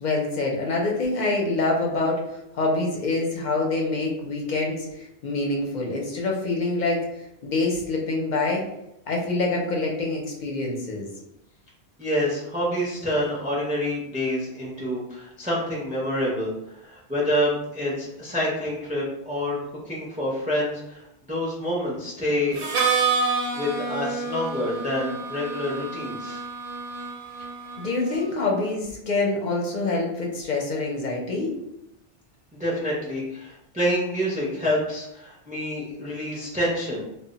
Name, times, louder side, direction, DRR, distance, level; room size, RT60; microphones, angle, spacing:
voice 1, 0.0-2.3 2.5-7.1 7.4-8.6 9.1-11.1 27.8-31.5, left 3 dB, 55° left, -1 dB, 0.6 m, -26 dB
voice 2, 12.0-19.6 19.9-22.6 23.5-26.4 32.6-37.0, equal, 10° right, -5 dB, 0.4 m, -27 dB
Harmonica, 22.5-28.3, right 4 dB, 65° right, 0.7 m, -28 dB
2.0 x 2.0 x 3.7 m, 0.83 s
omnidirectional pair, 1.1 m